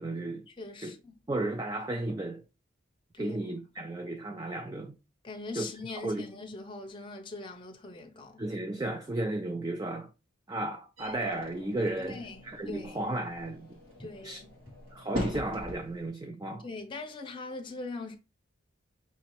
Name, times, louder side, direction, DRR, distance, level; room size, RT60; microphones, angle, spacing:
voice 1, 0.0-0.4 0.8-0.9 1.3-2.4 3.2-5.0 5.5-5.7 6.0-6.3 8.4-10.1 10.5-13.8 14.2-14.4 14.9-16.7, right 2 dB, 20° right, 0.3 m, -34 dB
voice 2, 0.6-1.1 3.1-3.6 5.2-8.4 12.0-13.0 14.0-14.5 16.6-18.2, left 3 dB, 25° left, 0.6 m, -41 dB
sound 1, 11.0-16.1, equal, 85° right, 1.7 m, -42 dB
4.8 x 2.8 x 3.0 m
head